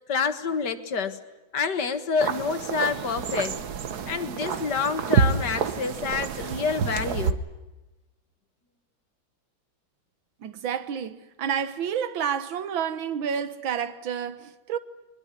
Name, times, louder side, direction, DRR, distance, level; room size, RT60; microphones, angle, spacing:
voice 1, 0.1-1.2 1.5-3.6 4.1-7.4, left 5 dB, 60° left, 2.2 m, -28 dB
sound 1, 2.2-7.3, right 6 dB, 60° right, 1.6 m, -28 dB
voice 2, 10.4-14.8, right 8 dB, 85° right, 1.9 m, -29 dB
22.5 x 21.5 x 9.8 m
omnidirectional pair, 2.1 m